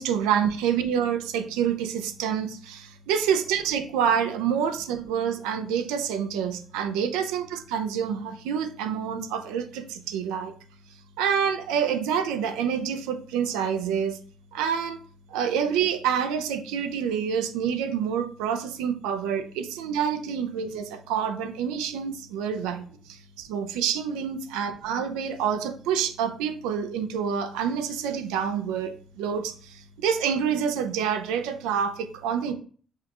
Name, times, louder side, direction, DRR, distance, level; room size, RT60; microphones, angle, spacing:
voice 1, 0.0-10.5 11.2-14.2 14.5-15.0 15.3-32.5, right 8 dB, 85° right, 8 dB, 0.5 m, -27 dB
5.6 x 2.4 x 2.9 m, 0.43 s
supercardioid pair, 70°, 0 cm